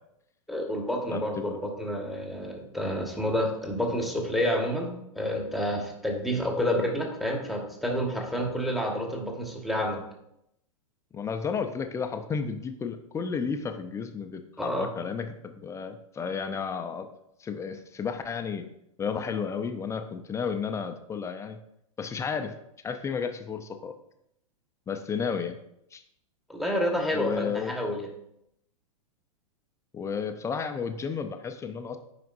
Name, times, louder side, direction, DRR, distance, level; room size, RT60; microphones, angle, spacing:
voice 1, 0.5-10.0 14.6-14.9 26.5-28.1, equal, ahead, 0 dB, 1.4 m, -29 dB
voice 2, 1.1-1.6 11.1-17.1 17.4-18.7 19.0-21.6 22.0-22.5 22.8-23.9 24.9-25.6 25.9-26.0 27.1-27.7 29.9-32.0, left 6 dB, 15° left, 7 dB, 0.6 m, -32 dB
9.1 x 5.1 x 2.6 m, 0.78 s
hypercardioid pair, 105°, 18 cm